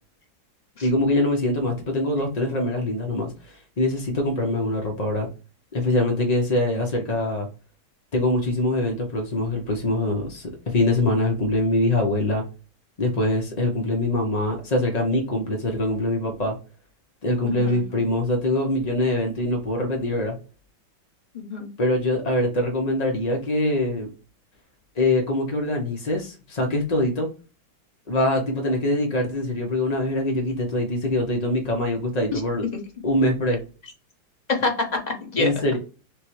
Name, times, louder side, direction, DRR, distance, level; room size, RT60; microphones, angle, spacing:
voice 1, 0.8-5.3 5.7-7.5 8.1-12.4 13.0-16.5 17.2-20.3 21.8-24.1 25.0-27.3 28.1-32.6 33.0-33.6 35.4-35.8, left 1 dB, 60° left, 1 dB, 0.4 m, -23 dB
voice 2, 17.4-17.8 21.3-21.7 32.3-32.4 34.5-35.5, left 3 dB, 30° left, 2 dB, 0.8 m, -26 dB
6.4 x 2.2 x 3.1 m, 0.34 s
omnidirectional pair, 2.1 m